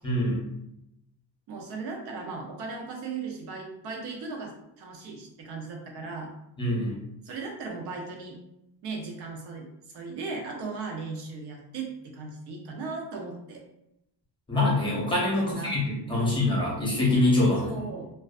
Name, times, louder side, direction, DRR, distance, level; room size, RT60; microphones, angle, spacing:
voice 1, 0.0-0.4 6.6-6.9 14.5-17.7, left 2 dB, 10° left, -5 dB, 0.7 m, -24 dB
voice 2, 1.5-6.3 7.2-8.4 8.8-13.6 15.3-15.7 16.1-16.4 17.6-18.1, right 4 dB, 70° right, 1 dB, 0.7 m, -37 dB
2.5 x 2.2 x 2.4 m, 0.82 s
cardioid pair, 160°, 42 cm